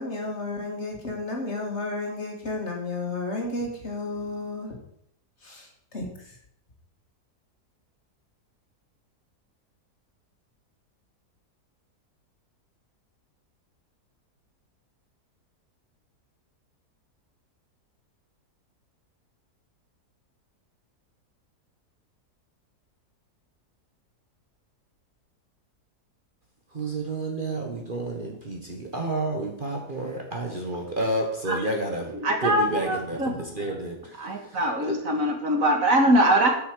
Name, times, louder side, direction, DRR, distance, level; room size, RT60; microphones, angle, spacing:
voice 1, 0.0-4.8 5.4-6.4, left 2 dB, 45° left, 0 dB, 2.4 m, -32 dB
voice 2, 26.7-32.1 32.4-35.0, right 2 dB, 35° right, 1 dB, 1.5 m, -30 dB
voice 3, 32.2-33.3 34.2-36.5, right 1 dB, 55° right, 3 dB, 2.1 m, -22 dB
8.5 x 7.1 x 6.8 m, 0.70 s
omnidirectional pair, 1.7 m